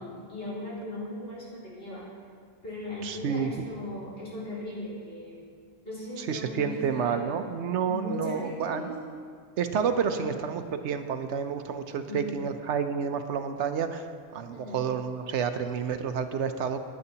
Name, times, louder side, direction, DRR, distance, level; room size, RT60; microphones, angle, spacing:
voice 1, 0.0-2.2 2.6-5.5 5.8-7.2 7.9-9.0 10.1-10.4 12.1-12.4 14.5-14.8, left 1 dB, 65° left, -8 dB, 3.9 m, -38 dB
voice 2, 3.0-3.5 6.2-8.9 9.6-14.1 14.3-16.8, right 7 dB, 70° right, 8 dB, 0.9 m, -29 dB
17.5 x 9.6 x 2.8 m, 2.1 s
omnidirectional pair, 1.2 m